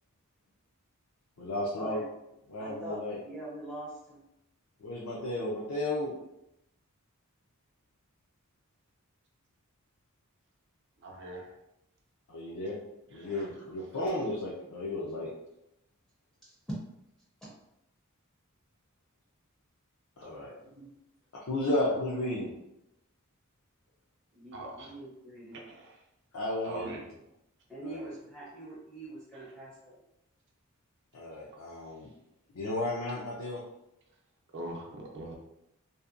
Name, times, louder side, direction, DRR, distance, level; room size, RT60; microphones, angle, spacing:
voice 1, 1.4-2.0 2.5-3.2 4.8-6.2 12.3-12.8 13.1-15.3 20.2-20.5 21.4-22.5 26.3-26.9 27.8-28.1 31.1-32.1 32.5-33.6, left 1 dB, 70° left, -6 dB, 0.5 m, -33 dB
voice 2, 2.6-4.2 13.2-13.7 16.4-16.5 20.6-20.9 24.3-25.6 26.8-27.0 27.7-30.0, right 1 dB, ahead, -8 dB, 0.5 m, -44 dB
voice 3, 11.0-11.5 13.1-13.3 24.5-24.9 25.5-26.0 26.6-27.1 34.5-35.3, right 1 dB, 55° right, -1 dB, 0.5 m, -42 dB
2.7 x 2.1 x 2.4 m, 0.85 s
head